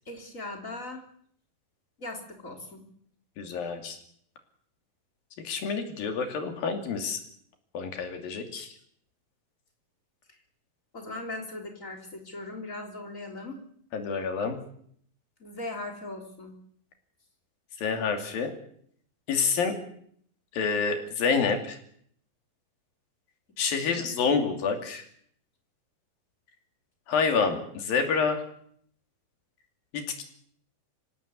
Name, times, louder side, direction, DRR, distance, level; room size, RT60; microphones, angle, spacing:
voice 1, 0.1-1.0 2.0-2.9 10.3-10.4 10.9-13.6 15.4-16.6 23.7-24.1, left 2 dB, 20° left, 3 dB, 3.7 m, -39 dB
voice 2, 3.4-4.0 5.4-7.2 7.7-8.7 13.9-14.6 17.8-18.5 19.3-19.7 20.5-21.8 23.6-25.0 27.1-28.4 29.9-30.2, left 5 dB, 85° left, 5 dB, 4.6 m, -28 dB
25.5 x 16.5 x 8.2 m, 0.64 s
omnidirectional pair, 4.0 m